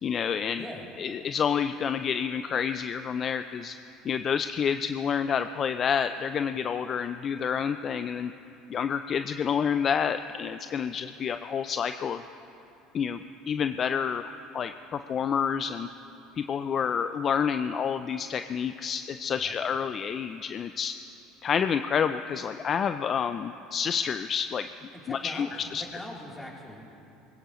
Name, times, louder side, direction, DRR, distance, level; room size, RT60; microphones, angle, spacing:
voice 1, 0.0-0.6 1.0-3.7 4.0-8.3 8.7-12.2 12.9-15.9 16.4-20.9 21.4-24.7 25.1-25.8, left 7 dB, 40° left, 10 dB, 0.4 m, -29 dB
voice 2, 0.5-0.9 19.3-19.5 25.0-27.0, left 1 dB, 15° left, -3 dB, 3.5 m, -41 dB
20.5 x 17.5 x 3.1 m, 2.9 s
supercardioid pair, 90°, 0 cm